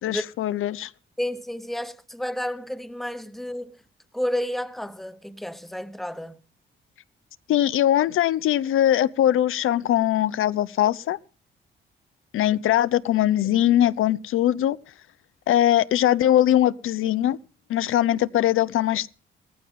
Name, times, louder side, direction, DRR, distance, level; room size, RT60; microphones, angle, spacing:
voice 1, 0.0-0.9 7.5-11.2 12.3-14.8 15.5-17.4 17.7-19.1, left 12 dB, 85° left, 0.7 m, -21 dB
voice 2, 1.2-3.7 4.1-6.4, left 1 dB, ahead, 0.9 m, -31 dB
18.0 x 15.0 x 3.7 m
cardioid pair, 160°, 21 cm